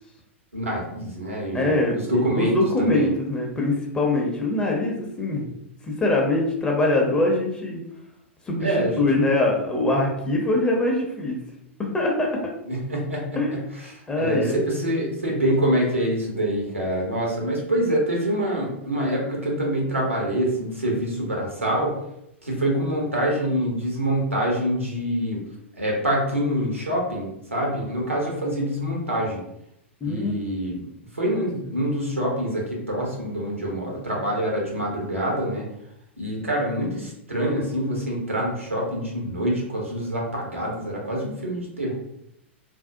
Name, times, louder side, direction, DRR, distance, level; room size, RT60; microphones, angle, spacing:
voice 1, 0.5-2.5 2.8-3.1 8.6-9.1 12.7-13.6 13.9-22.0 22.4-25.4 25.8-29.4 30.0-30.8 31.1-35.7 36.2-41.9, right 1 dB, 90° right, -2 dB, 0.8 m, -25 dB
voice 2, 1.5-5.5 5.8-7.8 8.5-11.4 11.9-12.4 13.4-13.5 14.1-14.6 30.0-30.4 31.4-31.5, left 2 dB, 10° left, -1 dB, 0.6 m, -23 dB
2.6 x 2.1 x 2.5 m, 0.79 s
figure-of-eight pair, 100°, 7 cm